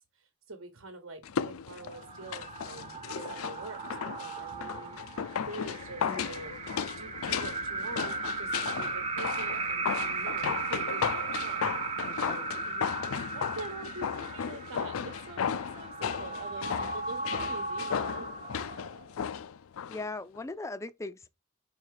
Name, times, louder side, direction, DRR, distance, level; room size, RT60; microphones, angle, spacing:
voice 1, 0.1-5.0 5.5-6.6 7.0-12.9 13.3-17.9 18.2-18.3, right 2 dB, 70° right, 1.1 m, -45 dB
sound 1, 1.2-20.0 20.3-20.4, left 7 dB, 80° left, 0.4 m, -35 dB
sound 2, 1.8-19.2, right 4 dB, 30° right, 0.8 m, -37 dB
voice 2, 12.1-12.6 19.9-21.3, left 2 dB, 15° left, 0.4 m, -39 dB
5.7 x 4.4 x 4.6 m
head